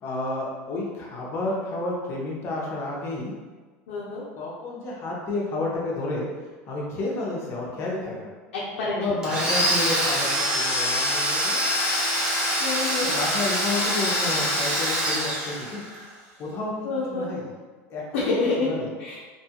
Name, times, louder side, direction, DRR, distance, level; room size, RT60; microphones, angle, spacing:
voice 1, 0.0-3.3 4.4-6.3 6.7-8.3 8.9-11.6 13.0-15.8 16.4-16.7 17.1-17.5 17.9-18.9, left 2 dB, 40° left, -3 dB, 0.7 m, -30 dB
voice 2, 3.9-4.2 8.5-8.9 9.6-9.7 12.6-13.1 16.8-17.3 18.1-18.7 19.0-19.2, left 3 dB, 90° left, -7 dB, 0.6 m, -27 dB
Domestic sounds home sounds, 9.2-16.0, equal, 10° right, 0.7 m, -25 dB
2.6 x 2.4 x 2.8 m, 1.4 s
supercardioid pair, 135°, 7 cm